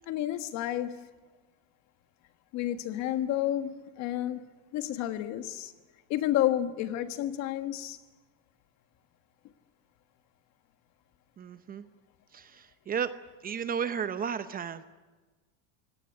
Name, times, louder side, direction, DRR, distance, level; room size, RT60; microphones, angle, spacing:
voice 1, 0.1-1.1 2.5-4.5 4.7-5.7 6.1-8.0, left 12 dB, 45° left, 1.5 m, -30 dB
voice 2, 11.4-11.8 12.3-13.1 13.4-14.8, right 7 dB, 25° right, 0.8 m, -33 dB
25.0 x 18.0 x 9.8 m
supercardioid pair, 145°, 38 cm